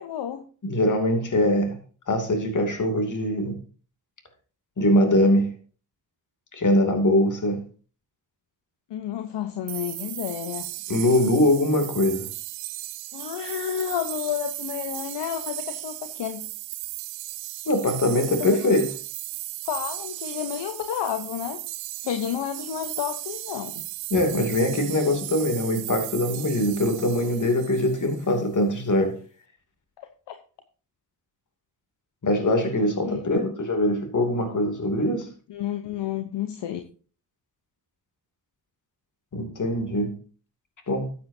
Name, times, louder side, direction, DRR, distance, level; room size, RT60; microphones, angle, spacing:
voice 1, 0.0-0.5 8.9-10.7 13.1-16.4 18.3-18.6 19.7-21.6 22.0-23.8 30.0-30.4 33.0-33.3 35.5-36.8, left 10 dB, 65° left, 1.0 m, -31 dB
voice 2, 0.6-1.8 2.1-3.6 4.8-5.5 6.5-7.6 10.9-12.3 17.7-18.9 24.1-29.2 32.2-35.3 39.3-40.2 40.9-41.1, left 1 dB, 40° left, 2.7 m, -22 dB
sound 1, 9.7-28.4, right 16 dB, 80° right, 0.8 m, -36 dB
12.5 x 8.7 x 2.7 m
supercardioid pair, 50°, 46 cm